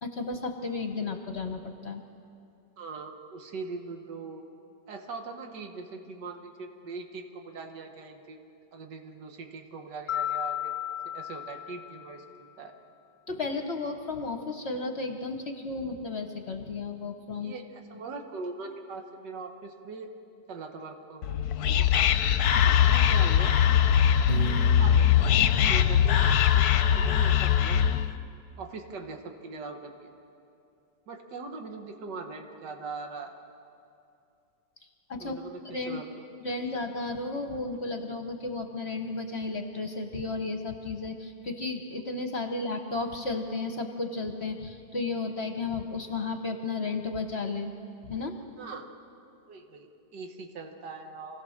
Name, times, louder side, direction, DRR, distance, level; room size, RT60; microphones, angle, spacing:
voice 1, 0.0-2.0 13.3-17.5 22.5-22.7 35.1-35.3 35.6-36.0 36.4-47.7 48.0-48.4, left 3 dB, 45° left, 5 dB, 1.1 m, -33 dB
voice 2, 2.8-4.5 4.9-8.4 8.7-10.7 11.1-12.3 12.6-12.7 17.4-20.1 20.5-21.4 21.7-21.9 22.6-23.6 24.6-26.2 26.6-28.1 28.6-30.1 31.1-33.3 35.2-36.8 48.6-48.9 49.5-51.4, right 4 dB, 70° right, 4 dB, 2.0 m, -41 dB
Mallet percussion, 10.1-12.5, left 12 dB, 90° left, 0.5 m, -34 dB
Whispering, 21.2-28.1, left 9 dB, 65° left, 1.1 m, -22 dB
Piano, 24.3-26.5, right 3 dB, 25° right, 2.3 m, -39 dB
26.5 x 17.0 x 6.5 m, 2.6 s
omnidirectional pair, 1.9 m